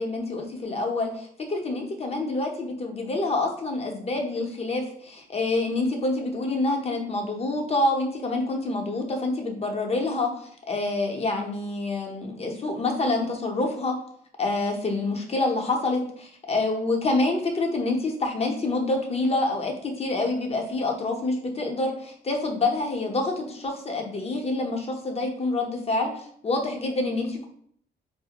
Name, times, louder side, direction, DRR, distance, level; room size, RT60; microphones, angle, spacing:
voice 1, 0.0-14.0 14.4-27.5, left 2 dB, 30° left, 2 dB, 0.7 m, -27 dB
4.0 x 2.0 x 2.9 m, 0.62 s
cardioid pair, 90°, 20 cm